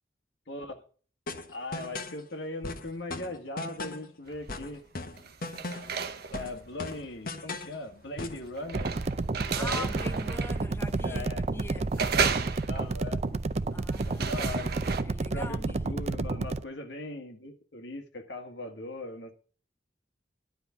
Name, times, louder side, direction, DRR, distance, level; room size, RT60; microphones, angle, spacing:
voice 1, 0.5-0.8 1.5-4.8 6.3-8.9 9.6-9.9 11.0-11.5 11.8-11.9 12.7-13.2 14.0-14.7 15.3-19.4, left 2 dB, 90° left, 1.8 m, -39 dB
sound 1, 1.3-2.2 2.6-4.1 4.5-6.0 6.3-7.8 8.2-8.5, left 2 dB, 55° left, 1.2 m, -38 dB
sound 2, 4.3-4.7 5.1-15.0, right 6 dB, 60° right, 1.0 m, -35 dB
sound 3, 8.7-16.6, right 3 dB, 40° right, 0.5 m, -31 dB
voice 2, 9.6-12.1 13.7-14.3 15.0-16.0, left 3 dB, 15° left, 0.5 m, -42 dB
11.5 x 5.3 x 8.3 m
head